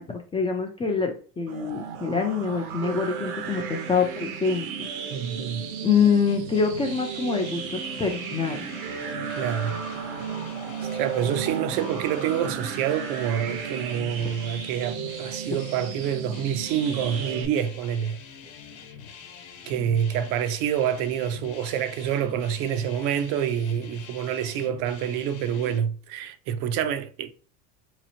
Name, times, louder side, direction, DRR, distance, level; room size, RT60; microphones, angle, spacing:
voice 1, 0.0-4.9 5.8-8.7, left 5 dB, 15° left, 0.3 m, -25 dB
sound 1, 1.5-17.5, right 6 dB, 75° right, 0.8 m, -34 dB
voice 2, 5.1-5.6 9.4-9.8 10.9-18.2 19.7-27.3, right 9 dB, 55° right, 0.5 m, -27 dB
sound 2, 6.3-25.8, left 6 dB, 60° left, 1.0 m, -44 dB
4.1 x 3.0 x 2.7 m
supercardioid pair, 115°, 42 cm